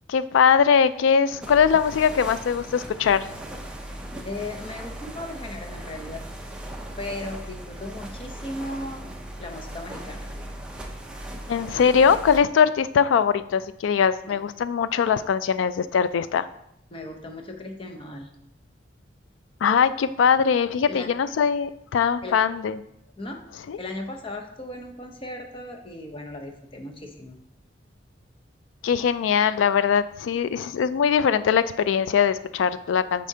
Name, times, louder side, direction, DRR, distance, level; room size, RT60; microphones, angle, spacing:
voice 1, 0.1-3.3 11.5-16.5 19.6-22.8 23.7-23.8 28.8-33.3, left 7 dB, 80° left, 15 dB, 0.3 m, -21 dB
sound 1, 1.4-12.4, right 1 dB, 5° right, 0.6 m, -38 dB
voice 2, 4.2-6.2 7.0-9.0 9.4-10.3 14.3-14.4 16.9-18.3 20.9-21.1 22.2-22.4 23.2-23.4 23.8-27.4, left 2 dB, 30° left, 3 dB, 0.7 m, -36 dB
8.3 x 4.2 x 2.8 m, 0.79 s
head